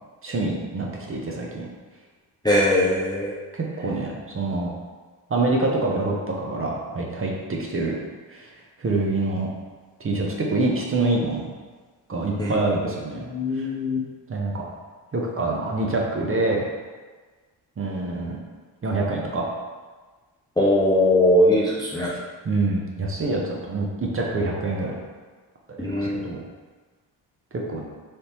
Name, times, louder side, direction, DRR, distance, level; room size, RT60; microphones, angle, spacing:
voice 1, 0.2-1.7 3.5-4.7 5.3-7.9 8.3-8.5 8.8-9.5 10.0-11.5 12.1-13.2 13.5-13.7 14.3-14.6 15.1-16.7 17.8-18.4 18.8-19.5 21.9-22.2 22.4-25.0 25.8-26.4 27.7-27.8, right 2 dB, 25° right, -2 dB, 0.7 m, -26 dB
voice 2, 2.4-3.3 12.4-12.5 13.3-14.0 20.6-22.1 25.8-26.3, left 1 dB, 10° left, -5 dB, 0.5 m, -20 dB
3.3 x 2.7 x 3.0 m, 1.4 s
hypercardioid pair, 45°, 50 cm